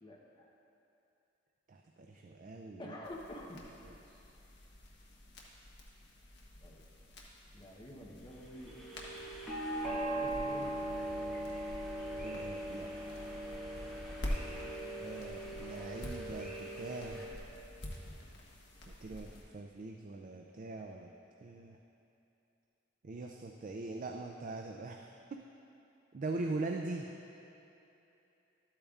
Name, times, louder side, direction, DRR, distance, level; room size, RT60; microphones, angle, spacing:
voice 1, 0.0-0.5 2.8-3.6 6.6-6.8 7.5-8.7 10.1-10.8, left 1 dB, 25° left, -3 dB, 0.9 m, -48 dB
voice 2, 2.1-2.9 3.8-4.0 12.2-12.9 15.0-17.3 18.9-21.1 21.4-21.8 23.0-25.0 25.3-25.4 26.1-27.1, right 3 dB, 45° right, 2 dB, 0.4 m, -42 dB
sound 1, 3.0-19.4, left 1 dB, 65° left, 1.2 m, -47 dB
sound 2, 8.4-17.3, right 1 dB, ahead, 1.7 m, -40 dB
12.5 x 8.6 x 2.4 m, 2.9 s
head